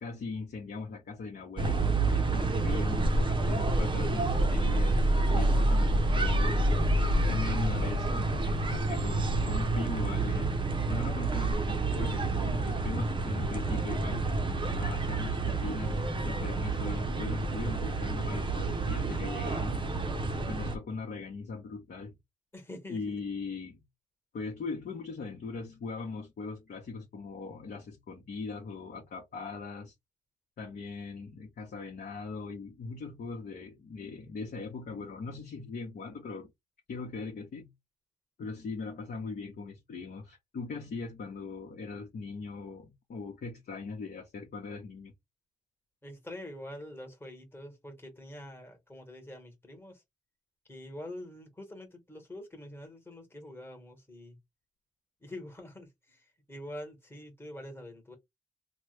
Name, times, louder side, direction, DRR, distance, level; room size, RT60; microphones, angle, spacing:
voice 1, 0.0-5.0 5.3-6.6 7.3-10.6 10.9-14.4 14.8-20.0 20.5-22.1 22.9-23.8 24.3-29.9 30.6-36.5 36.9-37.7 38.4-45.1, left 4 dB, 60° left, 1.0 m, -40 dB
sound 1, 1.6-20.8, right 2 dB, 30° right, 0.6 m, -28 dB
voice 2, 2.2-2.8 13.5-14.0 22.5-23.2 46.0-50.0 50.7-54.4 55.2-58.2, left 1 dB, 15° left, 1.2 m, -45 dB
3.2 x 2.2 x 3.1 m
cardioid pair, 95°, 17 cm